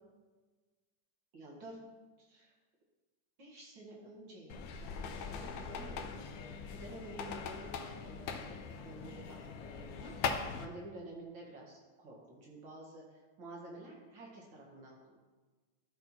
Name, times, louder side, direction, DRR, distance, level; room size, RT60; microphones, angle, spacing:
voice 1, 1.3-1.8 2.2-2.5 3.4-6.2 6.7-10.1 10.6-13.0 13.4-15.2, right 1 dB, 80° right, -3 dB, 2.5 m, -50 dB
sound 1, 4.5-10.6, left 6 dB, 85° left, 1.4 m, -41 dB
13.0 x 4.3 x 4.3 m, 1.3 s
omnidirectional pair, 2.0 m